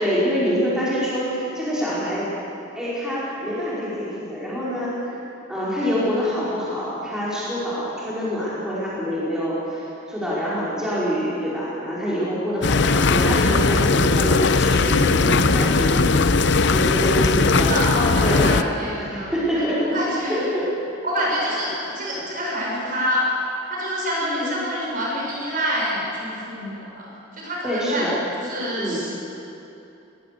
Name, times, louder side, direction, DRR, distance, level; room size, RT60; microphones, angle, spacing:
voice 1, 0.0-2.3 2.7-5.2 5.5-16.3 16.7-17.8 18.2-18.6 19.0-20.0 20.3-20.7 24.4-24.5 27.6-28.2 28.8-29.0, equal, 5° right, -10 dB, 5.3 m, -25 dB
sound 1, 12.6-18.6, left 4 dB, 60° left, 0.7 m, -19 dB
voice 2, 14.8-15.9 17.7-19.6 19.9-20.5 21.0-23.3 23.7-27.1 27.3-28.1 28.4-29.1, equal, 45° right, -4 dB, 7.3 m, -27 dB
21.5 x 20.5 x 6.9 m, 2.8 s
head